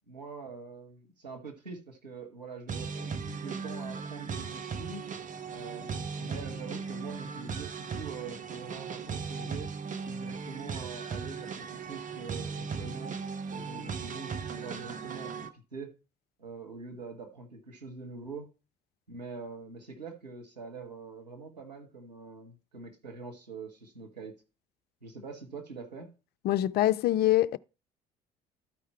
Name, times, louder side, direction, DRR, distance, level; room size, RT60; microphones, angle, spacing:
voice 1, 0.1-5.1 5.5-9.7 10.0-13.2 13.5-15.9 16.4-18.5 19.1-24.3 25.0-26.1, right 4 dB, 90° right, 1.4 m, -44 dB
sound 1, 2.7-15.5, right 5 dB, 40° right, 1.0 m, -37 dB
voice 2, 26.4-27.6, left 14 dB, 50° left, 0.5 m, -24 dB
12.5 x 4.8 x 4.4 m
figure-of-eight pair, 55°, 21 cm